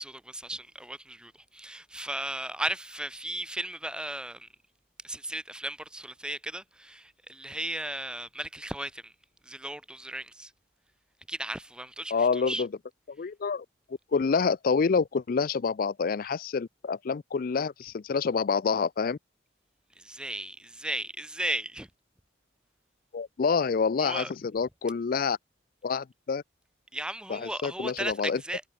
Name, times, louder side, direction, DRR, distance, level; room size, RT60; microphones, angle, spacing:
voice 1, 0.0-4.5 5.0-9.1 9.4-10.5 11.3-12.6 20.0-21.9 24.0-24.3 26.9-28.6, right 1 dB, 5° right, 1.2 m, -36 dB
voice 2, 12.1-12.7 13.1-13.7 14.1-19.2 23.1-25.4 25.8-26.4 27.3-28.4, left 5 dB, 50° left, 0.4 m, -27 dB
head